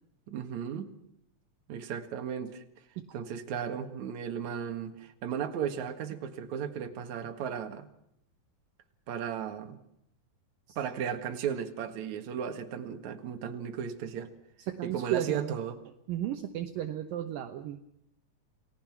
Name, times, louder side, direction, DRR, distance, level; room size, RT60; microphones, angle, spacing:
voice 1, 0.3-1.0 1.7-2.6 3.1-7.9 9.1-9.8 10.8-14.3 14.8-15.8, right 8 dB, 55° right, 2.8 m, -35 dB
voice 2, 14.7-15.6 16.1-17.8, right 12 dB, 70° right, 2.7 m, -34 dB
29.5 x 19.0 x 6.1 m
omnidirectional pair, 4.4 m